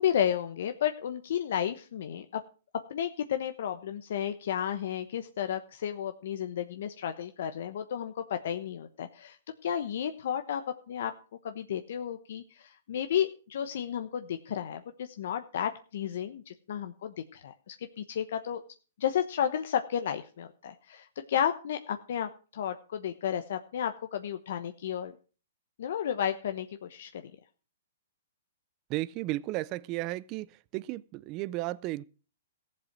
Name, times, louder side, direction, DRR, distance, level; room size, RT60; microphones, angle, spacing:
voice 1, 0.0-2.4 2.9-9.4 9.6-10.6 10.9-11.1 11.4-18.6 19.0-25.1 25.8-27.2, left 9 dB, 65° left, 1.0 m, -32 dB
voice 2, 28.9-30.5 30.7-32.0, right 18 dB, 35° right, 0.5 m, -34 dB
15.0 x 7.6 x 6.1 m
hypercardioid pair, 145°, 0 cm